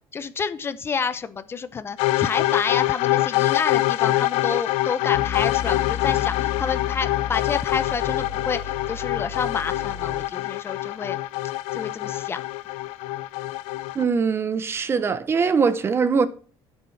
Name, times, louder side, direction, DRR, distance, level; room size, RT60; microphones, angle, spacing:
voice 1, 0.1-11.2 11.7-12.4, left 5 dB, 25° left, 0.7 m, -29 dB
sound 1, 2.0-14.0, left 17 dB, 90° left, 0.6 m, -25 dB
sound 2, 5.1-10.2, left 7 dB, 45° left, 2.1 m, -33 dB
voice 2, 13.9-16.3, right 5 dB, 25° right, 0.8 m, -22 dB
11.5 x 7.1 x 5.7 m
cardioid pair, 160°, 10 cm